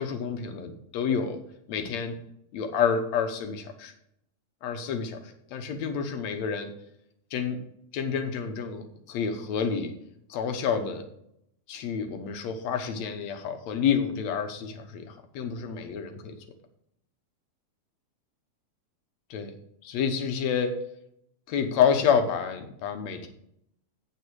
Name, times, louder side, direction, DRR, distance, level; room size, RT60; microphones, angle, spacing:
voice 1, 0.0-1.4 1.7-2.2 2.5-3.9 4.6-6.7 7.3-7.6 7.9-9.9 10.3-11.0 11.7-16.3 19.3-19.5 19.8-20.7 21.5-23.3, left 7 dB, 70° left, 7 dB, 2.3 m, -28 dB
8.5 x 8.4 x 4.7 m, 0.75 s
omnidirectional pair, 3.3 m